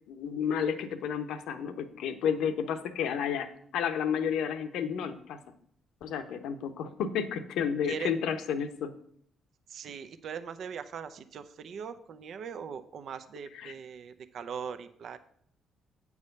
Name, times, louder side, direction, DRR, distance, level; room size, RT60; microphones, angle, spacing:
voice 1, 0.1-3.5 3.7-5.4 6.0-8.9 13.5-13.7, left 7 dB, 85° left, 9 dB, 0.9 m, -31 dB
voice 2, 9.7-15.2, right 7 dB, 65° right, 11 dB, 0.6 m, -40 dB
8.5 x 4.8 x 6.6 m, 0.63 s
cardioid pair, 90°, 0 cm